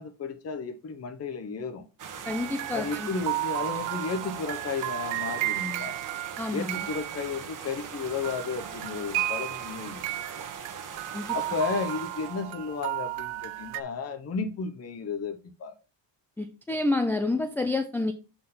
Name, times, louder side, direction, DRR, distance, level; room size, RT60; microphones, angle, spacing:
voice 1, 0.0-1.8 2.7-6.0 6.5-10.0 11.3-15.7, left 5 dB, 30° left, 0.9 m, -33 dB
sound 1, 2.0-12.5, right 6 dB, 40° right, 1.4 m, -41 dB
sound 2, 2.2-8.0 8.2-13.8, right 18 dB, 75° right, 0.6 m, -34 dB
voice 2, 2.3-3.1 6.4-6.8 11.1-11.3 16.4-18.1, left 2 dB, 5° left, 0.3 m, -28 dB
7.2 x 4.4 x 4.1 m
cardioid pair, 135°, 46 cm